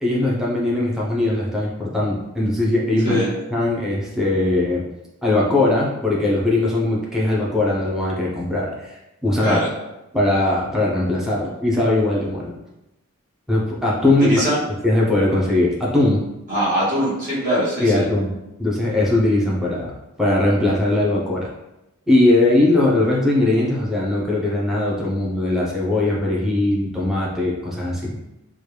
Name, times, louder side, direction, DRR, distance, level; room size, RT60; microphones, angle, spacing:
voice 1, 0.0-3.2 3.5-4.8 5.2-9.6 10.1-12.5 13.5-14.4 14.8-16.2 17.8-18.3 18.6-19.9 20.2-21.5 22.1-28.2, left 2 dB, ahead, -6 dB, 0.6 m, -20 dB
voice 2, 14.2-14.6 16.5-18.1, equal, 40° right, -8 dB, 1.0 m, -22 dB
3.1 x 2.3 x 3.2 m, 0.95 s
head